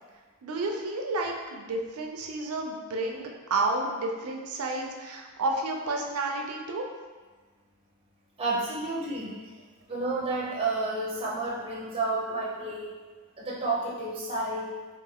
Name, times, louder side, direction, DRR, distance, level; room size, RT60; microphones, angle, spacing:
voice 1, 0.4-6.9, right 2 dB, 80° right, 2 dB, 0.5 m, -31 dB
voice 2, 8.4-9.3 9.9-12.9 13.4-14.7, right 2 dB, 25° right, -5 dB, 0.4 m, -30 dB
3.3 x 2.4 x 3.5 m, 1.4 s
head